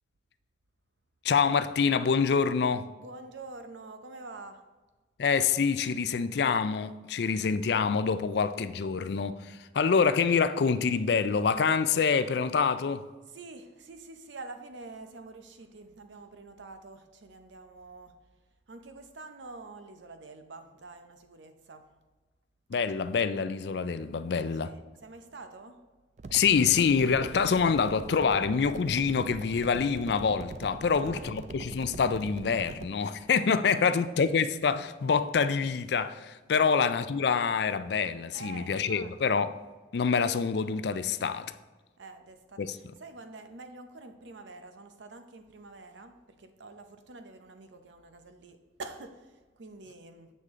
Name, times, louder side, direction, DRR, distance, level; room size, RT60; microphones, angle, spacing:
voice 1, 1.2-2.9 5.2-13.0 22.7-24.7 26.3-39.6 39.9-41.5 42.6-42.8, left 5 dB, 60° left, 0.4 m, -26 dB
voice 2, 3.0-4.7 13.3-18.2 18.7-21.9 24.6-25.8 30.8-31.4 33.7-34.1 36.5-36.8 38.3-39.4 42.0-50.3, right 3 dB, 75° right, 0.7 m, -47 dB
sound 1, 26.2-32.9, right 3 dB, 40° right, 0.4 m, -42 dB
8.0 x 6.5 x 3.7 m
head